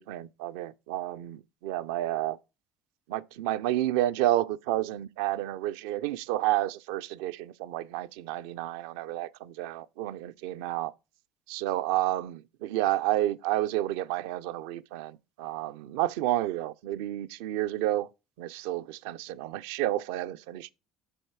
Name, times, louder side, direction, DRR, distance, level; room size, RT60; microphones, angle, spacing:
voice 1, 0.0-2.4 3.1-10.9 11.5-18.1 18.4-20.7, right 14 dB, 75° right, 0.4 m, -30 dB
7.8 x 6.4 x 4.7 m
hypercardioid pair, 65°, 0 cm